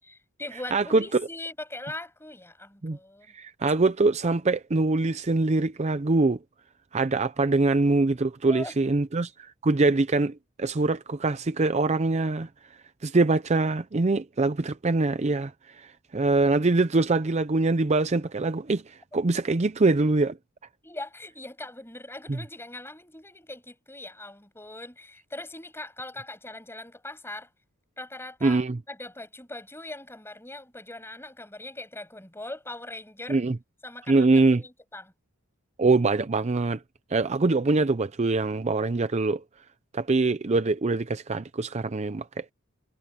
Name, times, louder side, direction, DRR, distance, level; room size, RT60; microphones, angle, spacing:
voice 1, 0.0-3.3 8.5-8.7 20.8-27.5 28.0-28.6 28.9-33.4 33.8-35.1, left 2 dB, 10° left, 7.5 m, -41 dB
voice 2, 0.7-1.0 2.8-3.0 3.3-6.4 6.9-12.5 13.0-20.4 22.3-22.4 28.4-28.8 33.3-33.6 34.1-34.6 35.8-36.8 37.1-39.4 39.9-42.4, right 3 dB, 30° right, 0.5 m, -24 dB
head